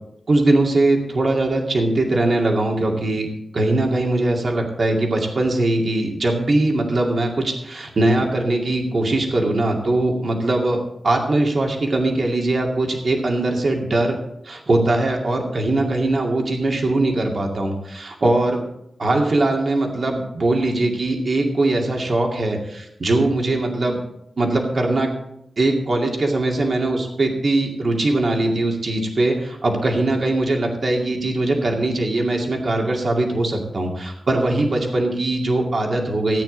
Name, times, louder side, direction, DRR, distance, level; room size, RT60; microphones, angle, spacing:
voice 1, 0.3-3.3 3.5-14.2 14.4-18.6 19.0-24.0 24.4-25.1 25.6-36.4, right 2 dB, 55° right, 1 dB, 2.3 m, -21 dB
15.0 x 9.2 x 4.0 m, 0.78 s
wide cardioid pair, 105°, 0 cm